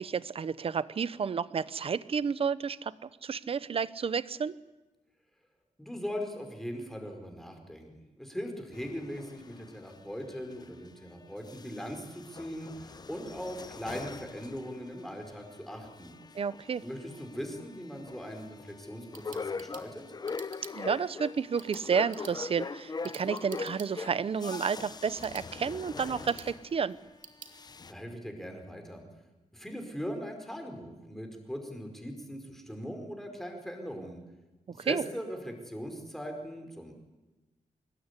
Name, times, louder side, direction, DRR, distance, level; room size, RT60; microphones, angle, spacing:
voice 1, 0.0-4.6 16.3-16.8 20.7-27.0 34.7-35.0, right 6 dB, 45° right, 17 dB, 0.8 m, -31 dB
voice 2, 5.8-16.1 16.8-20.0 27.9-29.0 29.5-34.2 34.8-36.9, equal, ahead, 4 dB, 4.9 m, -40 dB
sound 1, 8.7-11.1 11.4-27.1 27.4-27.9, left 4 dB, 30° left, 0.8 m, -42 dB
sound 2, 18.8-27.6, right 6 dB, 80° right, 2.7 m, -53 dB
25.0 x 21.5 x 9.9 m, 1.1 s
wide cardioid pair, 155°, 13 cm